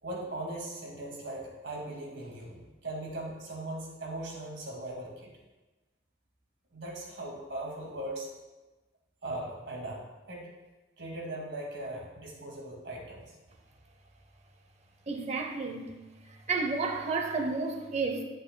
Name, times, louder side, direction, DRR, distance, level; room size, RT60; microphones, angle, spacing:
voice 1, 0.0-5.3 6.7-8.3 9.2-10.5 11.0-13.3, right 1 dB, 70° right, -2 dB, 2.2 m, -39 dB
voice 2, 15.1-15.9 16.5-18.2, right 4 dB, 35° right, 4 dB, 0.7 m, -31 dB
11.0 x 7.5 x 2.3 m, 1.1 s
head